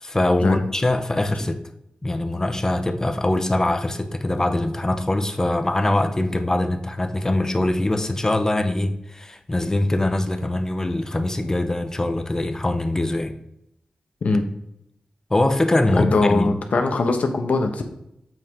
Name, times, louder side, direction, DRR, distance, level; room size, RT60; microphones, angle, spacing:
voice 1, 0.0-1.6 2.0-13.3 15.3-16.6, left 1 dB, 20° left, 8 dB, 0.8 m, -22 dB
voice 2, 15.9-17.8, left 3 dB, 70° left, 5 dB, 1.0 m, -21 dB
7.7 x 4.7 x 3.6 m, 0.79 s
wide cardioid pair, 75°, 3 cm